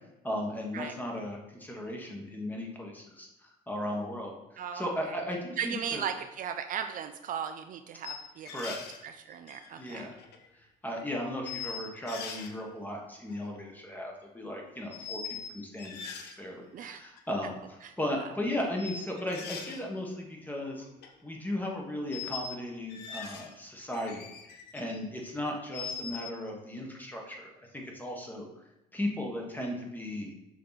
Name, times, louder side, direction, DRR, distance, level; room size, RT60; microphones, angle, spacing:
voice 1, 0.2-6.0 8.5-8.8 9.8-10.1 10.5-20.8 21.2-28.5 28.9-30.3, left 1 dB, 10° left, 0 dB, 1.3 m, -36 dB
voice 2, 4.6-5.2 5.6-8.5 9.0-10.1 16.7-17.0 17.8-17.9, right 8 dB, 55° right, 8 dB, 0.4 m, -37 dB
sound 1, 8.0-9.0 9.5-10.5 11.0-11.1 11.4-12.5 13.3-13.6 14.9-15.5 15.8-16.3 17.2-17.3 18.8-19.8 20.8-21.1 22.1-22.6 22.9-23.5 23.9-24.8 25.2-26.3, left 6 dB, 75° left, 0.9 m, -41 dB
6.6 x 4.7 x 4.0 m, 0.93 s
cardioid pair, 110°, 17 cm